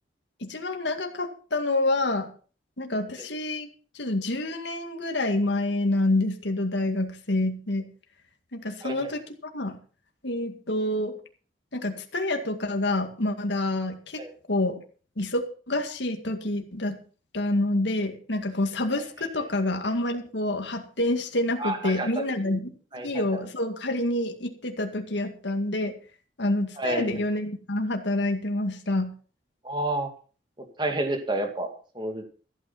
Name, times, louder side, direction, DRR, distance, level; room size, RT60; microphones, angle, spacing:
voice 1, 0.4-2.3 2.8-3.7 3.9-7.9 8.5-9.2 9.5-9.8 10.2-11.1 11.7-14.2 14.5-14.8 15.2-17.0 17.3-22.8 23.0-26.0 26.4-29.1, left 2 dB, 75° left, 5 dB, 2.1 m, -27 dB
voice 2, 21.6-22.1 22.4-22.5 22.9-23.4 26.8-27.1 29.6-30.1 30.6-32.2, right 1 dB, 25° right, 4 dB, 2.4 m, -30 dB
14.5 x 8.9 x 5.8 m, 0.39 s
head